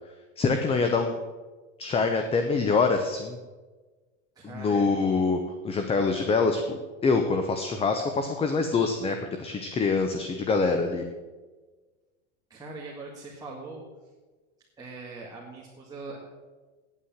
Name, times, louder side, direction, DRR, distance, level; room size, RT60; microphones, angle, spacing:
voice 1, 0.4-1.2 1.8-3.4 4.5-5.4 5.6-11.0, left 4 dB, 15° left, 6 dB, 0.7 m, -25 dB
voice 2, 4.4-4.9 12.5-13.8 14.8-16.2, right 3 dB, 10° right, -4 dB, 2.0 m, -41 dB
9.6 x 8.8 x 7.3 m, 1.3 s
supercardioid pair, 140°, 37 cm